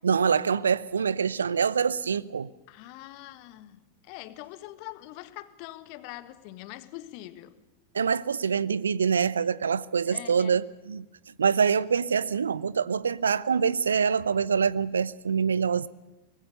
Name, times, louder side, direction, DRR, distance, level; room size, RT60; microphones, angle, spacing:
voice 1, 0.0-2.5 7.9-11.1 11.4-15.9, right 6 dB, 70° right, 0.6 m, -25 dB
voice 2, 2.7-3.8 4.1-7.5 10.1-10.6, left 16 dB, 45° left, 1.5 m, -43 dB
24.0 x 20.0 x 6.7 m
figure-of-eight pair, 90°, 0 cm